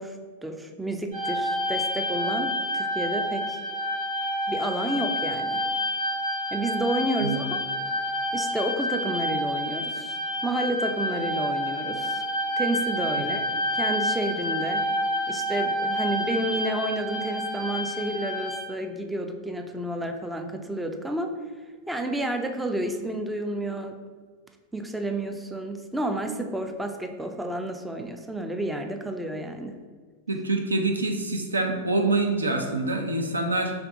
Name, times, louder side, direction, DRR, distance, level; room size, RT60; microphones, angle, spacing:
voice 1, 0.0-3.6 4.5-5.6 6.5-7.6 8.3-12.2 12.6-13.5 13.7-14.9 15.3-21.3 21.9-24.0 24.7-29.8, right 1 dB, 5° right, 5 dB, 0.3 m, -30 dB
sound 1, 1.1-18.6, equal, 35° right, 0.9 m, -29 dB
voice 2, 30.3-33.7, right 2 dB, 75° right, 4 dB, 0.4 m, -25 dB
3.4 x 3.0 x 3.6 m, 1.5 s
figure-of-eight pair, 90°, 0 cm